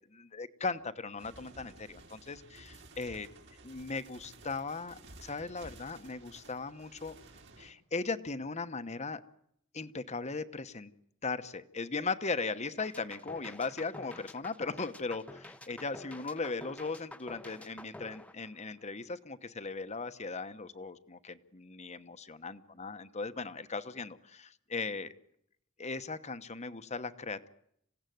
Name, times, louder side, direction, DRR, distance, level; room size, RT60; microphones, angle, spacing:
voice 1, 0.3-3.3 3.6-7.2 7.6-9.2 9.7-10.9 11.2-25.1 25.8-27.5, left 4 dB, 35° left, 10 dB, 1.1 m, -38 dB
sound 1, 1.2-7.7, right 2 dB, 60° right, 3.9 m, -54 dB
sound 2, 12.8-19.0, left 1 dB, 5° left, 0.9 m, -49 dB
27.0 x 17.0 x 9.3 m, 0.73 s
head